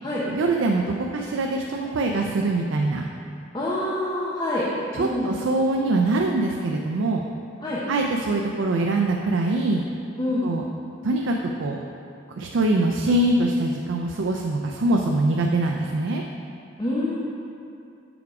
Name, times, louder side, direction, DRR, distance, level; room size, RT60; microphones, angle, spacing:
voice 1, 0.3-3.1 4.9-7.3 7.9-9.8 10.4-10.6 11.0-11.8 12.4-16.2, right 2 dB, 70° right, 1 dB, 0.4 m, -23 dB
voice 2, 3.5-4.7 5.0-5.3 7.6-7.8 10.2-10.5 16.8-17.2, left 1 dB, 25° left, -7 dB, 0.7 m, -26 dB
7.0 x 4.7 x 4.8 m, 2.6 s
head